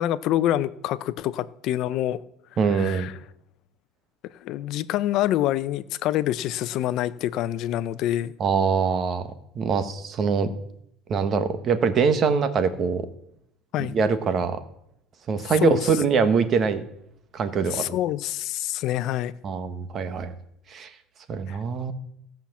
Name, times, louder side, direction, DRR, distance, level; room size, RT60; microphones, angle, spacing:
voice 1, 0.0-2.2 2.7-3.1 4.4-8.3 13.7-14.0 15.6-15.8 17.7-19.3 21.5-21.6, left 13 dB, 55° left, 15 dB, 0.6 m, -26 dB
voice 2, 2.6-3.1 8.4-10.5 11.1-13.1 13.9-14.6 15.3-16.8 17.3-18.0 19.4-20.3 20.7-20.9 21.3-21.9, right 5 dB, 35° right, 10 dB, 1.3 m, -23 dB
16.0 x 5.9 x 7.3 m, 0.75 s
cardioid pair, 140°, 0 cm